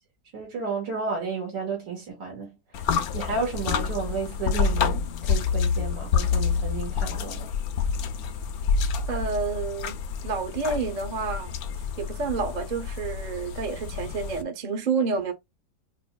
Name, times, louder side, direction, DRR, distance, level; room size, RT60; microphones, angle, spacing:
voice 1, 0.3-2.5 3.1-7.5, right 4 dB, 85° right, 2.4 m, -32 dB
sound 1, 2.7-14.4, left 6 dB, 70° left, 0.9 m, -28 dB
voice 2, 9.1-11.6 12.0-15.3, right 4 dB, 45° right, 0.6 m, -29 dB
5.1 x 2.6 x 2.2 m
omnidirectional pair, 1.9 m